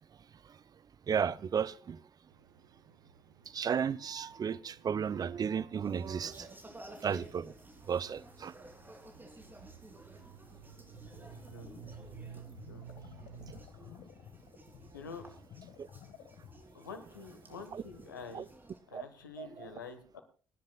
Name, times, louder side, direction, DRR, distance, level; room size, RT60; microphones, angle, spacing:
voice 1, 1.1-2.0 3.5-6.5 7.0-7.5 7.9-8.5 17.7-17.8 18.3-18.5 18.9-19.0 19.4-19.7, right 7 dB, 40° right, 0.7 m, -34 dB
sound 1, 2.3-13.5, right 8 dB, 80° right, 1.0 m, -55 dB
sound 2, 5.8-18.8, right 1 dB, 20° right, 3.6 m, -55 dB
sound 3, 10.5-18.1, left 8 dB, 60° left, 1.8 m, -55 dB
voice 2, 14.9-15.3 16.7-18.5 18.9-20.2, left 5 dB, 85° left, 1.7 m, -47 dB
28.5 x 10.5 x 2.4 m
figure-of-eight pair, 50°, 10 cm